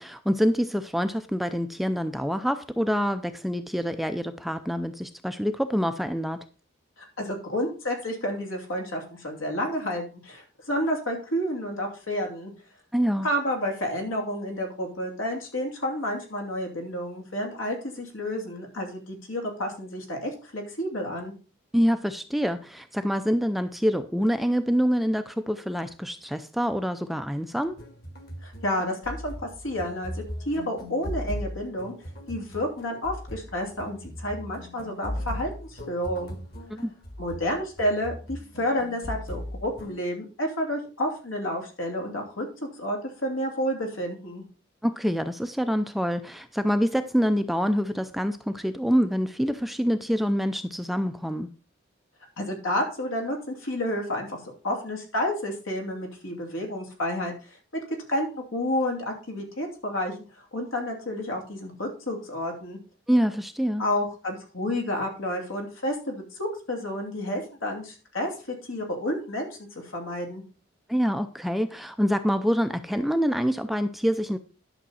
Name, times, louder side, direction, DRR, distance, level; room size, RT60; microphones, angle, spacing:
voice 1, 0.0-6.4 12.9-13.3 21.7-27.8 36.7-36.9 44.8-51.5 63.1-63.8 70.9-74.4, equal, ahead, 0.4 m, -26 dB
voice 2, 7.0-12.5 13.2-21.3 28.4-29.3 29.6-31.9 32.3-36.4 37.2-44.4 52.4-57.6 58.1-62.8 63.8-70.4, left 1 dB, 80° left, 2.8 m, -30 dB
sound 1, 27.7-40.0, equal, 45° left, 1.8 m, -38 dB
11.0 x 6.5 x 4.2 m
head